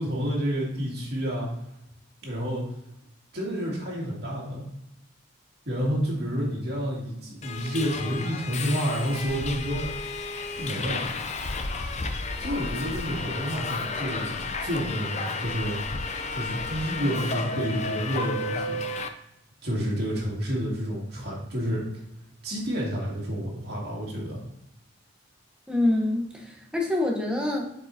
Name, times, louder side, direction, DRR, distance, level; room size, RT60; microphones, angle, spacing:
voice 1, 0.0-1.5 2.2-2.7 3.3-4.7 5.7-9.8 10.6-11.0 12.4-15.8 16.3-18.8 19.6-21.8 22.4-24.4, equal, 55° right, -4 dB, 2.3 m, -29 dB
Subway metro underground, 7.4-19.1, left 3 dB, 35° left, 0.5 m, -32 dB
voice 2, 25.7-27.7, left 1 dB, 5° right, 0 dB, 0.9 m, -26 dB
7.5 x 4.9 x 2.7 m, 0.85 s
head